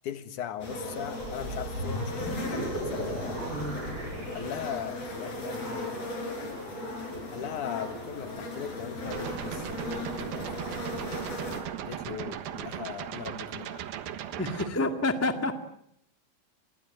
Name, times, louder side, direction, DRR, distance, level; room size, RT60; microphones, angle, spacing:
voice 1, 0.0-3.3 4.3-6.0 7.3-10.9 11.8-13.9, left 9 dB, 65° left, 2.7 m, -39 dB
sound 1, 0.6-11.6, left 1 dB, 45° left, 7.1 m, -37 dB
sound 2, 1.2-5.2, right 1 dB, 25° right, 6.7 m, -36 dB
voice 2, 3.5-3.8 14.4-15.6, left 2 dB, 20° left, 0.4 m, -29 dB
sound 3, 9.0-14.7, right 10 dB, 85° right, 3.2 m, -37 dB
28.5 x 21.5 x 9.2 m
omnidirectional pair, 4.1 m